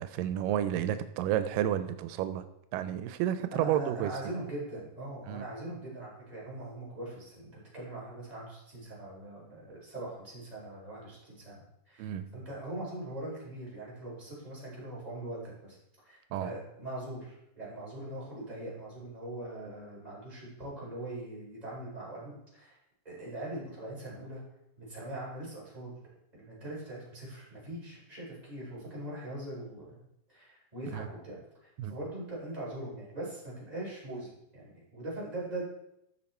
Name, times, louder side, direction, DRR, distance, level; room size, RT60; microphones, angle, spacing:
voice 1, 0.0-2.4 2.7-4.1 5.3-5.5 12.0-12.3 16.3-16.5 30.9-31.1 31.8-32.0, right 11 dB, 90° right, 11 dB, 2.3 m, -31 dB
voice 2, 3.5-15.8 16.0-22.8 23.0-24.4 24.8-25.9 26.3-30.0 30.3-31.4 31.6-35.7, right 1 dB, 10° right, -7 dB, 4.7 m, -41 dB
14.5 x 6.0 x 4.4 m, 0.80 s
omnidirectional pair, 3.8 m